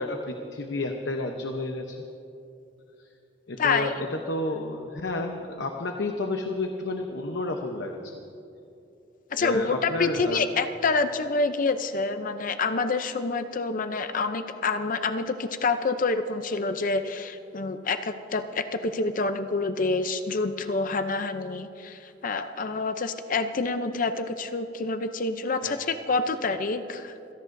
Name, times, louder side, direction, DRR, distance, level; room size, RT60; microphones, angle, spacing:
voice 1, 0.0-2.0 3.0-3.1 3.5-8.2 9.4-10.4 25.6-25.8, left 2 dB, 70° left, 3 dB, 0.9 m, -31 dB
voice 2, 3.6-3.9 9.3-27.1, left 3 dB, 50° left, 9 dB, 0.6 m, -27 dB
27.0 x 17.0 x 2.7 m, 2.7 s
head